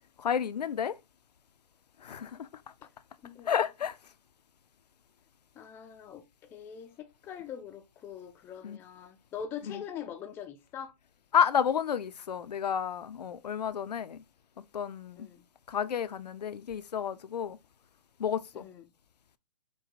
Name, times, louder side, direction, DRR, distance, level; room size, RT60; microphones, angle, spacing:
voice 1, 0.2-1.0 2.0-2.5 3.5-4.0 8.6-8.8 9.7-9.8 11.3-14.2 14.7-15.3 15.7-17.6 18.2-18.7, left 8 dB, 85° left, 0.5 m, -30 dB
voice 2, 3.2-3.6 5.6-10.9 15.2-15.4 18.5-18.9, left 8 dB, 10° left, 0.3 m, -43 dB
4.8 x 2.2 x 3.8 m
hypercardioid pair, 135°, 20 cm